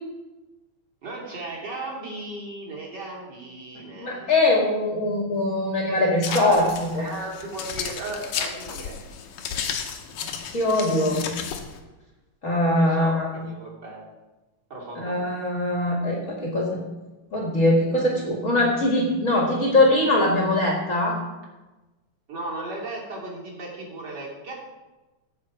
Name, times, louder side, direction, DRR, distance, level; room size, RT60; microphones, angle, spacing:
voice 1, 1.0-4.3 6.3-9.0 12.7-14.0 14.7-15.3 22.3-24.5, right 2 dB, 35° right, -3 dB, 3.2 m, -35 dB
voice 2, 4.0-7.0 10.5-11.3 12.4-13.3 15.0-16.8 17.3-21.2, left 1 dB, 30° left, -1 dB, 1.8 m, -22 dB
sound 1, 6.2-11.8, left 7 dB, 90° left, 2.7 m, -33 dB
16.0 x 6.9 x 4.8 m, 1.1 s
omnidirectional pair, 3.7 m